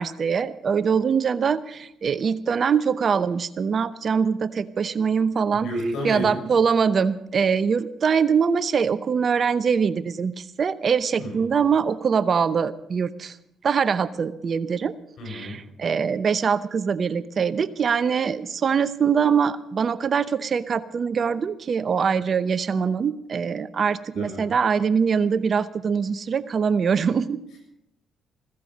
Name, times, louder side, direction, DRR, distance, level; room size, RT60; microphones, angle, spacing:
voice 1, 0.0-5.7 6.0-13.3 13.6-14.9 15.3-27.4, right 6 dB, 50° right, 15 dB, 0.8 m, -23 dB
voice 2, 5.5-6.5 11.2-11.4 15.2-15.6 24.2-24.5, equal, 70° left, 2 dB, 6.9 m, -31 dB
15.5 x 15.5 x 5.3 m, 0.79 s
supercardioid pair, 60°, 0 cm